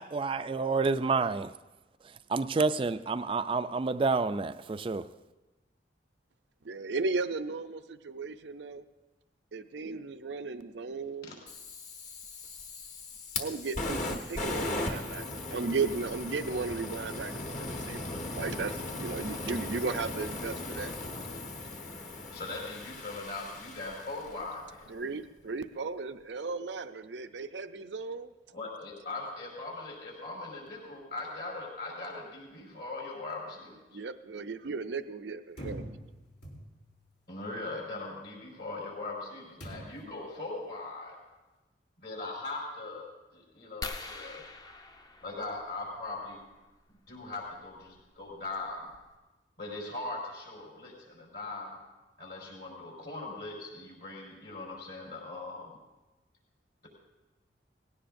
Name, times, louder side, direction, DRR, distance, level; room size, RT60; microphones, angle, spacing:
voice 1, 0.0-1.5 2.0-5.1, right 4 dB, 30° right, 0.3 m, -29 dB
voice 2, 6.6-8.8 9.5-11.3 13.4-20.9 24.9-28.3 33.9-35.8, right 4 dB, 75° right, 0.5 m, -35 dB
Fire, 11.5-24.6, left 2 dB, 45° left, 1.3 m, -38 dB
voice 3, 22.3-24.9 28.5-34.0 37.3-41.1 42.0-44.4 45.2-46.4 47.1-48.9 49.6-51.8 52.2-55.8, left 2 dB, 60° left, 5.0 m, -40 dB
sound 1, 35.6-37.1 39.6-40.2, right 1 dB, 85° left, 3.2 m, -44 dB
sound 2, 43.8-46.2 47.8-48.0 48.6-48.7 48.9-49.2, left 2 dB, 20° left, 0.6 m, -43 dB
19.0 x 17.0 x 2.6 m
head